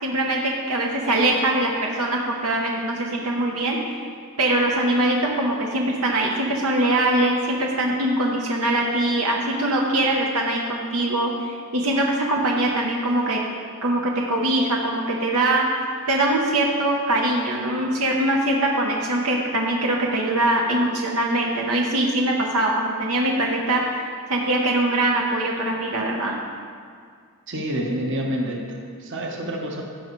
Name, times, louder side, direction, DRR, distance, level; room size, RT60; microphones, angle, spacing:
voice 1, 0.0-3.8 4.4-13.4 13.8-15.6 16.1-23.8 24.3-26.4, right 1 dB, 85° right, -1 dB, 1.0 m, -22 dB
voice 2, 27.5-29.8, equal, 60° right, 0 dB, 1.2 m, -28 dB
15.0 x 5.4 x 3.2 m, 2.1 s
head